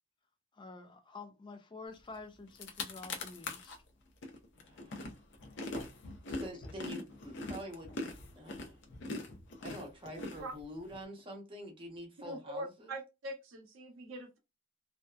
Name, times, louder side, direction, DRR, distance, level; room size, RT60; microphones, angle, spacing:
voice 1, 0.5-3.7, left 3 dB, 25° left, 0.3 m, -49 dB
sound 1, 2.2-2.3 2.5-3.8 4.2-11.0, left 2 dB, 60° left, 0.6 m, -42 dB
voice 2, 4.6-5.1 6.3-8.0 8.4-8.8 9.6-12.9, equal, 25° right, 0.8 m, -46 dB
voice 3, 12.2-14.4, right 1 dB, 70° right, 0.7 m, -43 dB
2.7 x 2.1 x 2.2 m
head